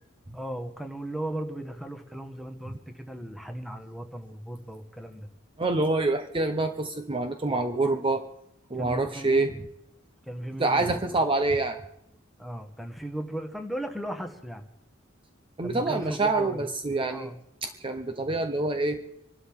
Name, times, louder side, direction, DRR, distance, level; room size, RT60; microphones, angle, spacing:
voice 1, 0.3-5.3 7.8-8.1 8.8-9.4 10.3-11.0 12.4-14.7 15.6-16.7 17.1-17.4, right 1 dB, ahead, 5 dB, 1.5 m, -37 dB
voice 2, 5.6-8.2 8.7-9.6 10.6-11.8 15.6-17.3 17.6-19.0, right 2 dB, 25° right, 6 dB, 0.8 m, -26 dB
27.5 x 12.5 x 3.7 m, 0.79 s
head